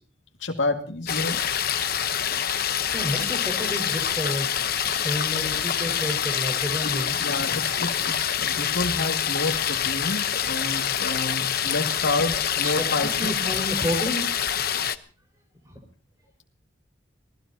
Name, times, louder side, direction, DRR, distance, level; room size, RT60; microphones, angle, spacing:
voice 1, 0.4-1.4 6.9-13.3, left 2 dB, 75° left, 2 dB, 2.1 m, -29 dB
sound 1, 1.1-15.0, left 9 dB, 50° left, 0.9 m, -26 dB
voice 2, 2.5-7.2 12.6-12.9 13.2-14.6 15.6-15.8, equal, 15° right, 4 dB, 5.1 m, -31 dB
27.5 x 18.5 x 2.8 m, 0.41 s
head